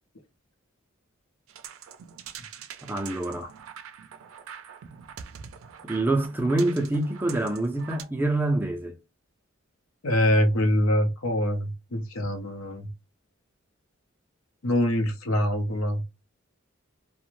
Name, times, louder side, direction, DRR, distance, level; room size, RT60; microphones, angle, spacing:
sound 1, 1.5-8.0, right 8 dB, 90° right, 0.4 m, -44 dB
voice 1, 2.8-3.5 5.8-9.0, right 2 dB, 10° right, 0.4 m, -26 dB
voice 2, 10.0-12.9 14.6-16.0, left 1 dB, 90° left, 0.7 m, -24 dB
2.5 x 2.1 x 3.0 m
head